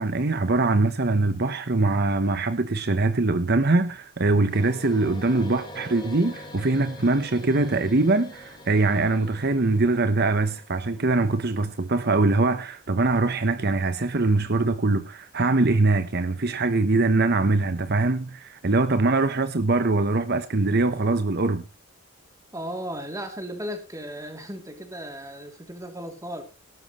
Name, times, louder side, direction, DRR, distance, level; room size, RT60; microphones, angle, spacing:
voice 1, 0.0-21.6, right 2 dB, 45° right, 0.9 m, -23 dB
sound 1, 4.5-11.8, left 1 dB, 20° left, 3.8 m, -45 dB
voice 2, 22.5-26.4, equal, 15° right, 2.9 m, -35 dB
17.5 x 12.5 x 3.1 m
head